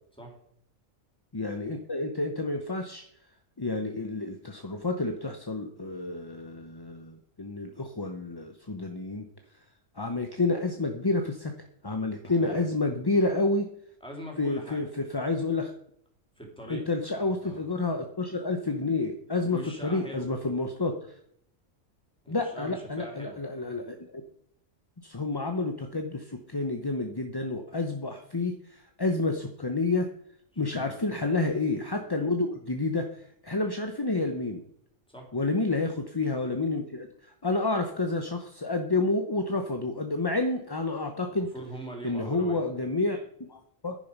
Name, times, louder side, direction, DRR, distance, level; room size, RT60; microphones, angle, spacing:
voice 1, 1.3-3.0 3.6-9.3 10.0-11.5 11.8-13.7 14.4-15.7 16.7-21.0 22.3-24.2 25.0-30.1 30.6-34.6 35.3-37.1 37.4-41.5 42.0-44.0, left 3 dB, 20° left, 5 dB, 0.7 m, -29 dB
voice 2, 12.2-12.6 14.0-14.8 16.4-16.8 17.2-17.6 19.3-20.3 22.2-23.4 30.5-30.9 35.1-35.3 41.3-42.6, right 1 dB, 5° left, 0 dB, 3.5 m, -42 dB
10.5 x 10.5 x 5.4 m, 0.67 s
omnidirectional pair, 1.4 m